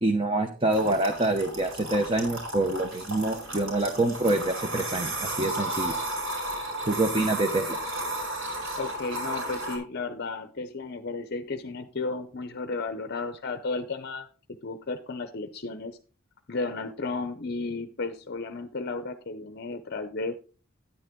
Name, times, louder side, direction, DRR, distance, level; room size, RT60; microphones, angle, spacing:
voice 1, 0.0-5.9 6.9-7.8, right 2 dB, 25° right, 5 dB, 0.9 m, -26 dB
sound 1, 0.7-9.8, right 1 dB, 65° right, 5.0 m, -33 dB
voice 2, 8.8-14.3 14.6-16.0 16.5-20.4, left 3 dB, 50° left, 10 dB, 0.6 m, -33 dB
10.0 x 9.5 x 3.7 m, 0.37 s
head